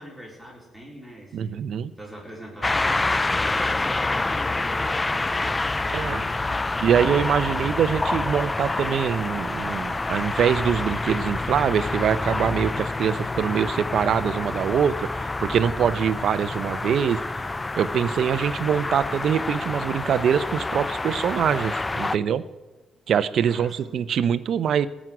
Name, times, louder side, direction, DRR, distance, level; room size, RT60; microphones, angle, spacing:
voice 1, 0.0-1.6 2.0-3.2 3.5-6.8 23.5-24.0, equal, ahead, -4 dB, 4.2 m, -43 dB
voice 2, 1.3-1.9 5.9-6.2 6.8-17.2 17.8-22.4 23.1-24.9, right 8 dB, 65° right, 14 dB, 0.7 m, -24 dB
sound 1, 2.6-22.2, left 2 dB, 20° left, 0.4 m, -27 dB
17.0 x 6.3 x 9.2 m, 1.1 s
cardioid pair, 90°, 0 cm